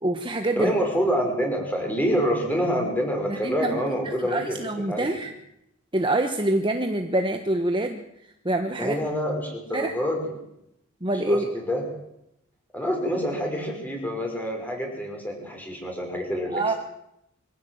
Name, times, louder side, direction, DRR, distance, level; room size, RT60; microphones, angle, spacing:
voice 1, 0.0-0.7 3.3-3.8 4.3-5.3 5.9-8.0 8.4-9.0 9.7-9.9 11.0-11.5 16.5-16.7, right 1 dB, 20° right, 5 dB, 1.3 m, -25 dB
voice 2, 0.5-5.2 8.8-10.3 11.1-11.8 12.7-16.8, equal, 10° left, 1 dB, 6.0 m, -27 dB
24.5 x 16.5 x 8.1 m, 0.82 s
head